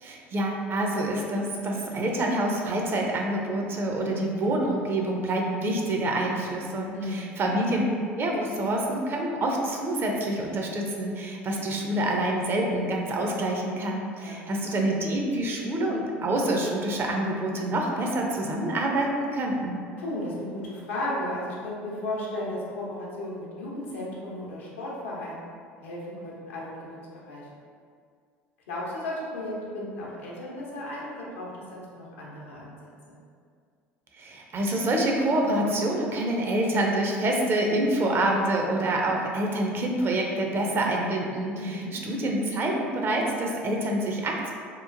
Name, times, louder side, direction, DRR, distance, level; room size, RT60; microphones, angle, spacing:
voice 1, 0.0-7.8 8.2-19.8 34.2-44.5, right 1 dB, 35° right, 0 dB, 0.5 m, -27 dB
voice 2, 6.9-7.3 14.2-14.6 20.0-27.5 28.7-33.2 41.6-41.9, left 1 dB, 85° left, -5 dB, 0.6 m, -35 dB
2.9 x 2.1 x 2.5 m, 2.1 s
hypercardioid pair, 70°, 6 cm